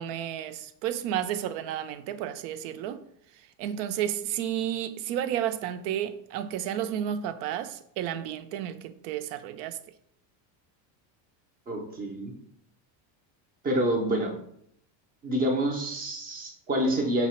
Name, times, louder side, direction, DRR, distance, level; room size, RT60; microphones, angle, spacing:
voice 1, 0.0-3.0 3.6-9.8, right 10 dB, 85° right, 0.6 m, -32 dB
voice 2, 11.7-12.3 13.6-14.4 15.2-17.3, right 1 dB, 20° right, 0.4 m, -27 dB
5.5 x 2.1 x 4.2 m
cardioid pair, 160°, 49 cm